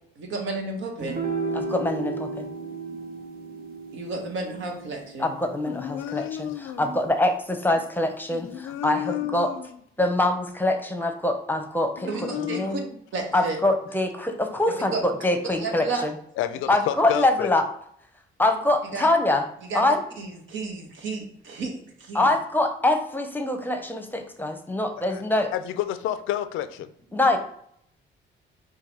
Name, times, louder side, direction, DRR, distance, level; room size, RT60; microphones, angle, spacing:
voice 1, 0.2-1.2 3.9-5.3 12.1-12.6 13.1-13.6 14.9-15.0 15.6-16.0 18.9-19.1 19.7-19.8 20.2-22.3, right 3 dB, 75° right, 2 dB, 1.2 m, -32 dB
sound 1, 1.0-7.5, right 4 dB, 50° right, 0.9 m, -35 dB
voice 2, 1.5-2.5 5.2-9.5 10.0-12.8 13.3-16.2 16.7-17.6 18.4-19.5 19.7-20.0 22.1-25.5 27.1-27.4, left 2 dB, 10° left, 6 dB, 0.7 m, -24 dB
voice 3, 5.6-6.9 8.3-9.7 12.0-13.0 16.4-17.5 25.1-25.2 25.5-26.9, left 12 dB, 85° left, 11 dB, 0.4 m, -31 dB
4.6 x 2.3 x 4.6 m, 0.68 s
cardioid pair, 90°, 20 cm